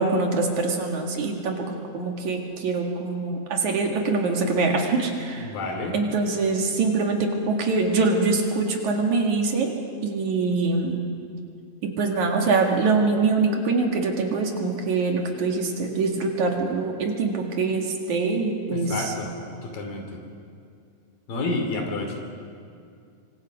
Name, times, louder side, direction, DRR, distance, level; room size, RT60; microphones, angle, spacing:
voice 1, 0.0-5.5 5.9-9.7 10.0-11.0 11.8-18.9, right 3 dB, 60° right, 1 dB, 3.3 m, -24 dB
voice 2, 5.4-6.0 18.7-19.3 19.6-20.2 21.3-22.2, left 2 dB, 80° left, 3 dB, 4.7 m, -29 dB
26.0 x 24.5 x 5.2 m, 2.4 s
omnidirectional pair, 4.0 m